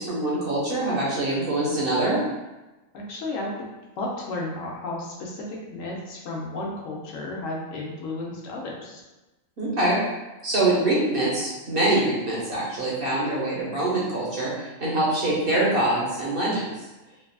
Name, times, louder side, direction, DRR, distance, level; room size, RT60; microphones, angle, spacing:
voice 1, 0.0-2.2 9.6-10.0 10.4-16.7, right 2 dB, 50° right, -6 dB, 0.8 m, -24 dB
voice 2, 2.9-3.5 4.0-9.0, left 2 dB, 75° left, -2 dB, 1.0 m, -33 dB
3.2 x 2.3 x 2.3 m, 1.1 s
omnidirectional pair, 1.4 m